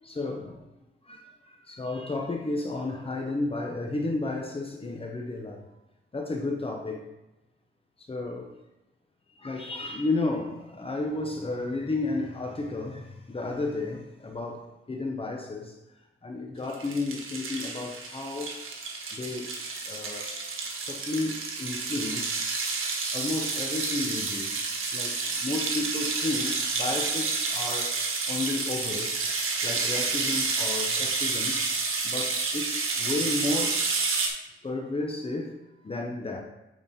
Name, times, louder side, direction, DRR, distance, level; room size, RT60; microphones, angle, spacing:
voice 1, 0.0-0.6 1.1-1.2 1.7-5.6 6.1-7.0 8.1-8.5 9.4-15.7 16.2-18.5 19.1-19.5 19.9-20.3 20.9-22.3 23.1-24.5 24.9-27.9 28.3-29.1 29.6-31.6 32.0-33.8 34.6-35.5 35.8-36.4, left 2 dB, 25° left, 1 dB, 0.9 m, -32 dB
sound 1, 16.7-34.3, right 4 dB, 80° right, 1.4 m, -30 dB
8.9 x 4.2 x 4.3 m, 1.0 s
wide cardioid pair, 115°, 21 cm